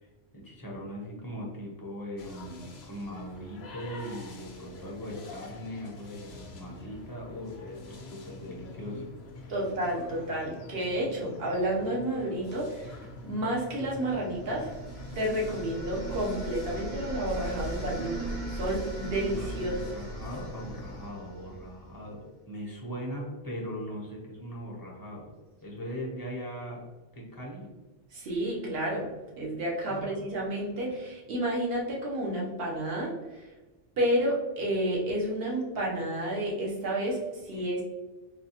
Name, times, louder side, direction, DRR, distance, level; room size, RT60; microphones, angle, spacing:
voice 1, 0.0-9.1 9.4-9.5 19.4-25.3 25.6-26.8 27.1-27.7 29.9-30.2 37.6-37.8, equal, 20° left, -3 dB, 0.6 m, -40 dB
sound 1, 2.2-21.1, left 2 dB, 60° left, 0.8 m, -46 dB
voice 2, 9.5-14.7 15.2-19.9 28.1-33.5 34.0-37.8, right 1 dB, 55° right, -3 dB, 1.0 m, -31 dB
sound 2, 14.0-21.9, right 2 dB, 40° right, 0.6 m, -39 dB
4.1 x 2.3 x 2.8 m, 1.2 s
omnidirectional pair, 1.3 m